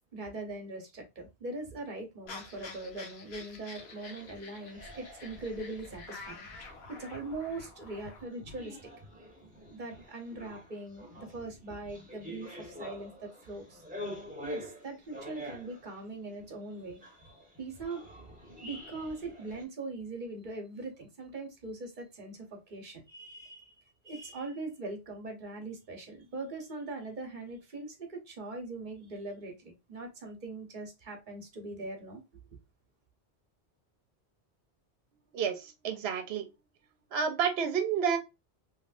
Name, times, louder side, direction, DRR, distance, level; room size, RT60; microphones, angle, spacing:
voice 1, 0.1-8.8 9.7-13.8 14.4-18.0 18.6-23.7 24.0-32.2, right 2 dB, 50° right, 1.0 m, -41 dB
sound 1, 2.3-8.2, left 3 dB, 65° left, 1.0 m, -48 dB
sound 2, 3.7-19.6, equal, 10° right, 1.0 m, -47 dB
voice 2, 35.3-36.4 37.1-38.2, right 7 dB, 70° right, 0.9 m, -30 dB
3.1 x 2.8 x 2.4 m
omnidirectional pair, 1.1 m